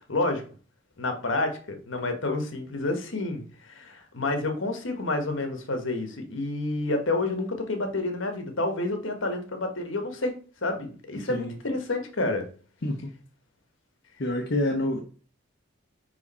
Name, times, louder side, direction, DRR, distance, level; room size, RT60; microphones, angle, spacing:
voice 1, 0.1-0.4 1.0-12.5, left 2 dB, 70° left, 5 dB, 1.3 m, -29 dB
voice 2, 14.2-15.0, left 1 dB, 55° left, 0 dB, 0.8 m, -27 dB
5.3 x 4.7 x 4.2 m, 0.40 s
head